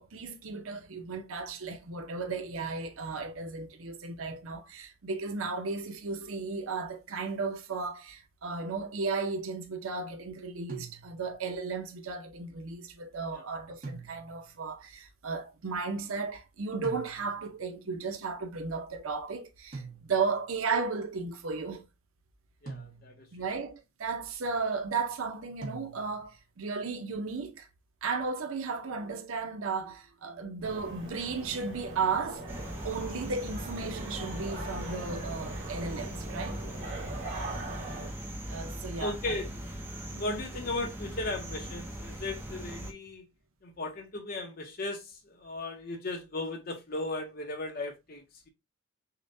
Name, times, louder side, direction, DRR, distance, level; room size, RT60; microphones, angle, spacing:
voice 1, 0.0-19.8 20.1-21.9 23.3-27.7 28.0-32.4 32.8-36.6 38.5-39.2 40.1-40.2, right 4 dB, 85° right, 0.7 m, -34 dB
sound 1, 10.7-11.4 13.8-14.6 16.8-17.6 19.7-20.5 22.7-23.4 25.6-26.4, right 3 dB, 40° right, 1.2 m, -44 dB
voice 2, 22.6-23.3 37.0-37.2 38.9-39.5 40.1-43.3 43.6-48.5, left 2 dB, 45° left, 0.7 m, -36 dB
sound 2, 30.6-38.1, right 2 dB, 65° right, 1.9 m, -41 dB
Early morning Interior room tone + exterior natural ambience, 32.5-42.9, right 1 dB, 10° right, 0.6 m, -40 dB
6.5 x 2.2 x 2.6 m
head